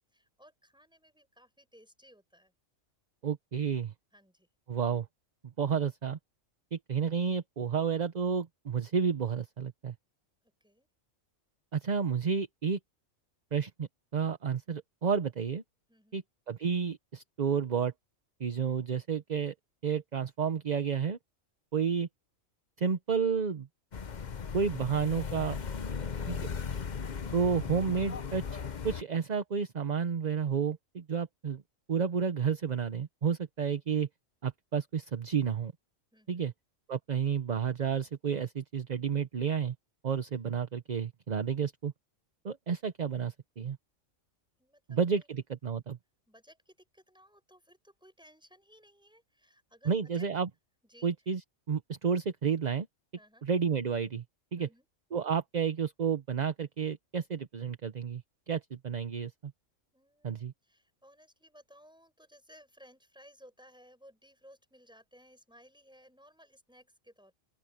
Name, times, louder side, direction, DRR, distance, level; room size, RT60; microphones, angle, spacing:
voice 1, 0.1-2.5 4.1-4.5 10.4-10.9 15.9-16.2 36.1-36.5 44.6-45.3 46.3-50.3 50.8-51.1 53.1-53.5 54.5-54.9 59.9-67.3, equal, 5° right, 7.0 m, -59 dB
voice 2, 3.2-3.9 4.7-5.1 5.6-6.2 6.7-9.9 11.7-12.8 13.5-15.6 16.1-16.2 16.5-17.9 18.4-19.5 19.8-21.2 21.7-22.1 22.8-23.7 24.5-25.6 26.3-26.5 27.3-31.6 31.9-34.1 34.4-35.7 36.3-36.5 36.9-39.7 40.0-41.9 42.4-43.8 44.9-46.0 49.9-50.5 51.0-51.4 51.7-52.9 53.4-54.2 54.5-54.7 55.1-59.5 60.2-60.5, right 6 dB, 40° right, 0.8 m, -31 dB
sound 1, 23.9-29.0, left 6 dB, 40° left, 0.9 m, -37 dB
open air
omnidirectional pair, 1.4 m